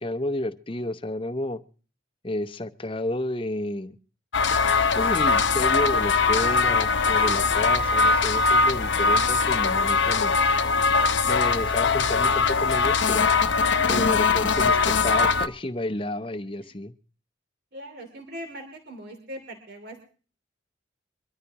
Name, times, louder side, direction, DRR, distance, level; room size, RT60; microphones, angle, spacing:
voice 1, 0.0-1.6 2.2-3.9 4.9-10.4 11.3-13.3 13.9-16.9, left 1 dB, 30° left, 11 dB, 0.8 m, -31 dB
sound 1, 4.3-15.5, left 4 dB, 70° left, 0.8 m, -21 dB
voice 2, 13.5-14.2 16.6-16.7 17.7-20.0, right 1 dB, 55° right, 3 dB, 3.0 m, -39 dB
24.0 x 13.5 x 3.0 m, 0.38 s
head